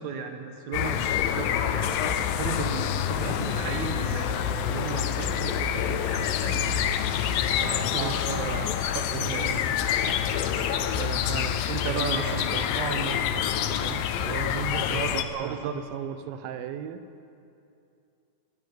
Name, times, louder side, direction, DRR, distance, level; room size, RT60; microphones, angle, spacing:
voice 1, 0.0-7.0 7.6-9.6 11.6-12.5 14.9-15.8, right 6 dB, 60° right, 5 dB, 2.5 m, -35 dB
sound 1, 0.7-15.2, left 9 dB, 85° left, 2.6 m, -27 dB
sound 2, 1.3-12.8, right 2 dB, 35° right, 3.0 m, -43 dB
voice 2, 7.9-8.7 9.1-9.7 10.9-17.0, right 8 dB, 90° right, 11 dB, 2.6 m, -36 dB
20.0 x 13.0 x 9.9 m, 2.6 s
omnidirectional pair, 4.1 m